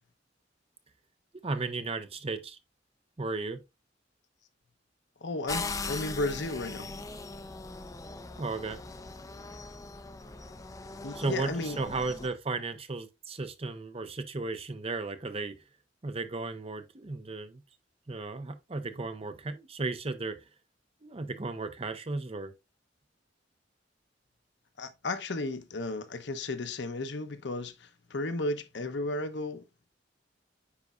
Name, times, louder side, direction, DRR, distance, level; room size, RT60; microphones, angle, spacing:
voice 1, 1.4-2.6 3.2-3.6 8.4-8.8 11.1-15.6 16.0-17.6 18.1-20.4 21.0-22.5, right 3 dB, 35° right, 0.7 m, -35 dB
voice 2, 5.2-6.9 11.0-12.0 24.8-29.6, left 2 dB, 70° left, 0.8 m, -34 dB
sound 1, 5.5-12.3, left 3 dB, 20° left, 0.5 m, -40 dB
9.7 x 4.1 x 2.4 m
head